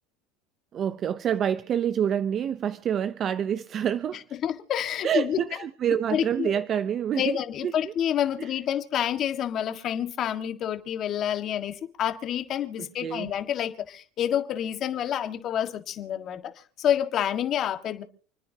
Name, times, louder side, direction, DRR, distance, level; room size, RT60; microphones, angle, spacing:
voice 1, 0.7-4.2 5.0-7.4 7.6-7.9 8.4-8.5 13.0-13.3, right 9 dB, 40° right, 0.7 m, -27 dB
voice 2, 4.4-5.4 6.1-6.6 7.2-16.5 16.8-18.0, left 10 dB, 45° left, 1.7 m, -28 dB
29.5 x 10.0 x 2.9 m
supercardioid pair, 110°, 0 cm